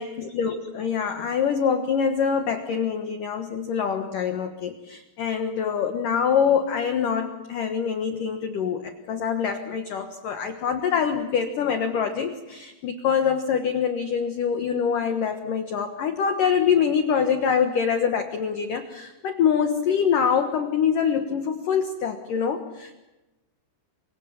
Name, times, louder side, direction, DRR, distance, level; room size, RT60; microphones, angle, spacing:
voice 1, 0.0-22.9, left 7 dB, 65° left, 6 dB, 2.2 m, -25 dB
28.5 x 25.0 x 7.2 m, 1.1 s
omnidirectional pair, 5.7 m